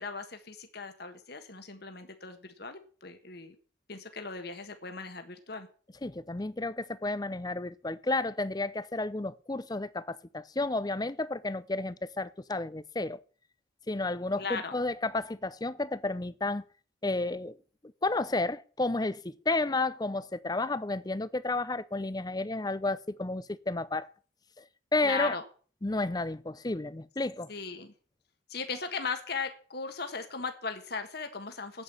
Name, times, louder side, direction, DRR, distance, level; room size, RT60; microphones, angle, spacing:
voice 1, 0.0-3.6 3.9-5.7 14.4-14.7 25.0-25.4 27.5-27.9 28.5-31.8, left 4 dB, 55° left, 1.5 m, -38 dB
voice 2, 6.0-13.2 13.9-16.6 17.0-17.6 18.0-24.1 24.6-24.7 24.9-25.4 25.8-27.5, left 2 dB, 20° left, 0.6 m, -31 dB
8.9 x 8.6 x 8.5 m
head